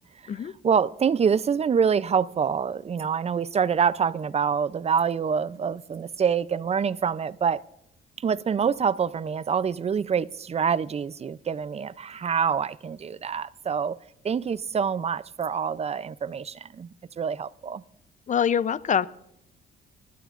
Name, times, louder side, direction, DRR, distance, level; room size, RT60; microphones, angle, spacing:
voice 1, 0.6-7.6 8.2-14.0 14.2-17.8, right 6 dB, 30° right, 0.5 m, -26 dB
voice 2, 18.3-19.1, left 8 dB, 40° left, 0.6 m, -24 dB
22.0 x 12.5 x 2.5 m
cardioid pair, 90°, 20 cm